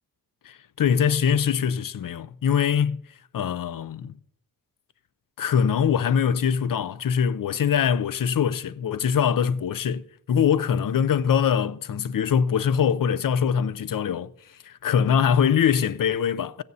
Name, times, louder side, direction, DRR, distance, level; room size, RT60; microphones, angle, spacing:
voice 1, 0.4-3.0 3.3-4.1 5.4-10.0 10.3-14.3 14.6-16.6, left 7 dB, 55° left, 0.5 m, -23 dB
16.5 x 15.0 x 2.7 m
wide cardioid pair, 115°, 39 cm